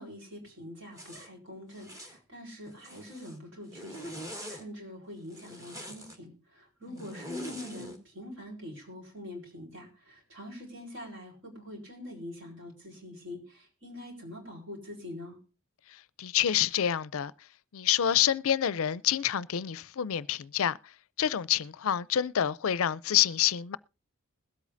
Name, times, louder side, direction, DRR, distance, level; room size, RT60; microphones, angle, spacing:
voice 1, 0.0-15.4, left 1 dB, 55° right, 4.3 m, -44 dB
Zipper (clothing), 0.9-1.3 1.7-2.2 2.7-3.4 3.7-4.6 5.3-6.2 7.0-8.0, equal, 15° right, 1.5 m, -43 dB
voice 2, 15.9-17.3 17.7-20.9 21.2-23.8, left 10 dB, 70° left, 0.4 m, -27 dB
21.0 x 8.3 x 2.6 m
head